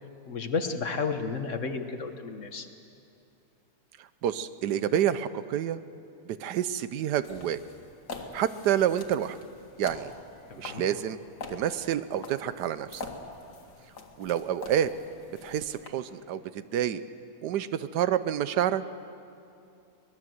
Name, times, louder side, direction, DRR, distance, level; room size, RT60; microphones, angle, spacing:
voice 1, 0.3-2.7 10.5-10.8, left 4 dB, 50° left, 7 dB, 1.5 m, -32 dB
voice 2, 4.0-5.8 6.3-7.6 8.3-9.4 9.8-10.1 10.6-11.2 11.5-13.1 14.2-14.9 15.4-17.0 17.4-18.8, right 10 dB, 85° right, 14 dB, 1.3 m, -28 dB
sound 1, 7.2-15.9, left 4 dB, 80° left, 2.2 m, -45 dB
23.5 x 19.5 x 7.8 m, 2.6 s
omnidirectional pair, 1.7 m